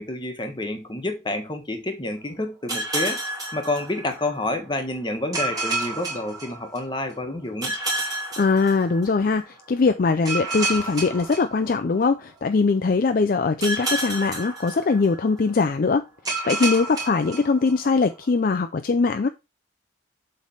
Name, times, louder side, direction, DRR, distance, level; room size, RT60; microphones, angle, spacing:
voice 1, 0.0-3.2 3.5-7.7, left 2 dB, 25° left, 1.3 m, -29 dB
sound 1, 2.7-4.4 5.3-7.1 7.6-9.4 10.3-12.2 13.6-15.4 16.3-18.1, right 2 dB, 20° right, 2.4 m, -30 dB
voice 2, 8.4-16.0 16.4-19.3, left 4 dB, 50° left, 0.4 m, -21 dB
7.3 x 3.4 x 5.5 m
head